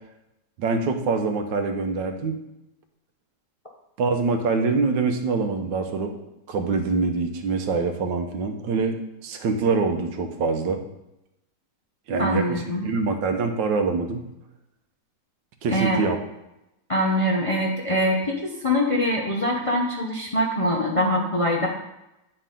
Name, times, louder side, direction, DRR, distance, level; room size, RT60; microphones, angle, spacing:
voice 1, 0.6-2.4 4.0-6.2 6.5-10.8 12.1-14.2 15.6-16.2, right 4 dB, 85° right, 6 dB, 1.5 m, -25 dB
voice 2, 12.2-12.9 15.7-16.0 16.9-21.7, left 1 dB, 30° left, -1 dB, 0.6 m, -23 dB
9.9 x 4.7 x 3.7 m, 0.90 s
omnidirectional pair, 1.9 m